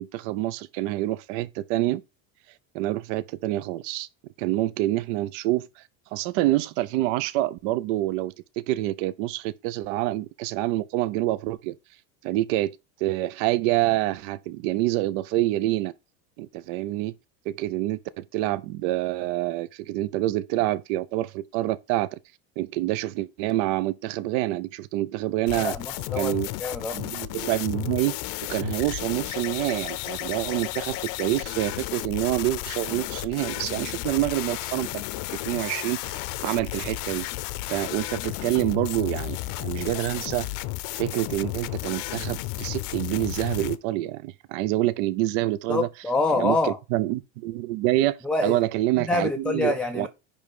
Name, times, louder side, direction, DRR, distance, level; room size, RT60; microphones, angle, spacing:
voice 1, 0.0-2.0 2.7-4.1 4.4-5.8 6.1-11.7 12.2-15.9 16.4-17.1 17.5-22.1 22.6-25.7 26.2-26.5 26.9-28.2 28.5-35.0 35.4-37.3 37.7-40.5 40.9-45.9 46.3-50.1, right 16 dB, 65° right, 0.7 m, -27 dB
sound 1, 25.5-43.8, left 18 dB, 55° left, 0.7 m, -33 dB
voice 2, 25.5-26.3 26.6-27.0 45.7-46.8 48.2-48.6 49.0-50.1, left 3 dB, 5° left, 0.3 m, -26 dB
10.0 x 3.4 x 5.4 m
cardioid pair, 150°, 40 cm